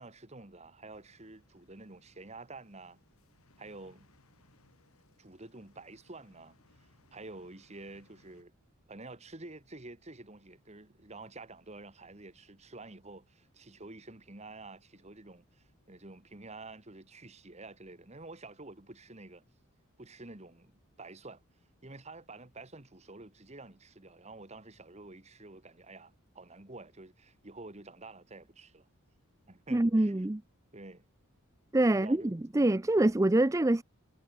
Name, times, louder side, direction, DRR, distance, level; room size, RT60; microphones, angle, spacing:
voice 1, 0.0-3.0 3.6-4.1 5.2-8.5 8.9-19.4 20.0-21.4 21.8-28.9 29.5-30.1 30.7-31.0 31.9-32.9, right 2 dB, 30° right, 1.7 m, -49 dB
sound 1, 0.9-8.4, left 2 dB, 80° left, 4.8 m, -67 dB
voice 2, 29.7-30.4 31.7-33.8, right 1 dB, 15° right, 0.5 m, -25 dB
head